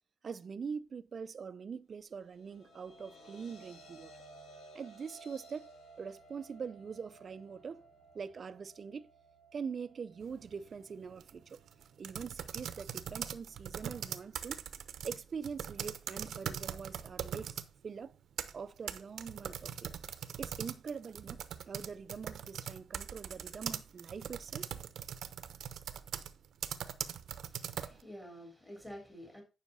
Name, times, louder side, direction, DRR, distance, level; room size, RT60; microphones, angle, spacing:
voice 1, 0.2-4.1 4.7-7.8 8.1-9.1 9.5-11.6 12.0-14.6 15.0-18.1 18.5-19.9 20.4-24.7, right 6 dB, 45° right, 0.5 m, -43 dB
sound 1, 2.2-14.5, right 2 dB, 75° left, 2.3 m, -58 dB
sound 2, 10.2-10.5 11.1-17.7 18.1-28.0, right 9 dB, 80° right, 0.8 m, -41 dB
voice 2, 27.4-29.4, equal, 10° left, 3.2 m, -49 dB
9.8 x 5.7 x 4.1 m
cardioid pair, 110°, 0 cm